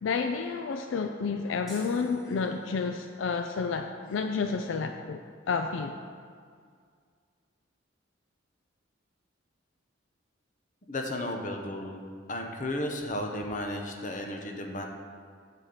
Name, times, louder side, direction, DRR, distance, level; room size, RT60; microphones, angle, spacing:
voice 1, 0.0-5.2 5.5-6.0, left 5 dB, 70° left, 6 dB, 0.4 m, -30 dB
sound 1, 1.7-3.0, equal, ahead, 1.9 m, -48 dB
voice 2, 10.9-12.0 12.3-14.9, left 1 dB, 40° left, 2 dB, 0.9 m, -34 dB
8.9 x 4.2 x 6.5 m, 2.1 s
head